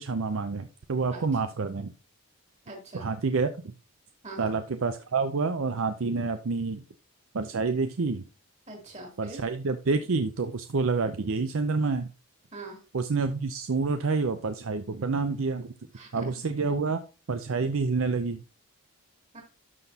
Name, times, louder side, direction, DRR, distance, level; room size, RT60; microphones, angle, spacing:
voice 1, 0.0-1.9 2.9-3.7 4.4-6.8 7.3-8.3 9.2-12.1 12.9-15.7 16.1-17.0 17.3-18.4, right 4 dB, 60° right, 9 dB, 0.5 m, -28 dB
voice 2, 2.7-3.1 4.2-4.5 8.7-9.4 12.5-12.8 16.0-16.3 19.3-19.4, right 2 dB, 30° right, 1 dB, 2.8 m, -42 dB
12.0 x 6.0 x 2.8 m, 0.32 s
head